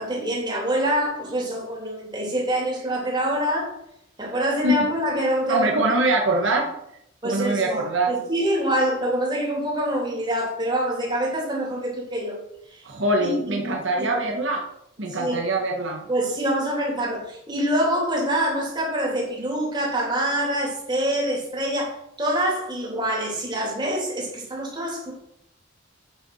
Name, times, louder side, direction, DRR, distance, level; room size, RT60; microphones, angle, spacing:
voice 1, 0.0-3.7 4.2-5.7 7.2-12.4 12.7-12.8 13.2-14.2 15.1-15.4 16.1-25.1, right 1 dB, 25° right, -3 dB, 3.1 m, -25 dB
voice 2, 5.5-6.7 7.2-8.1 12.8-14.6 15.0-16.0, right 2 dB, 70° right, 1 dB, 1.4 m, -23 dB
8.4 x 5.9 x 6.3 m, 0.77 s
head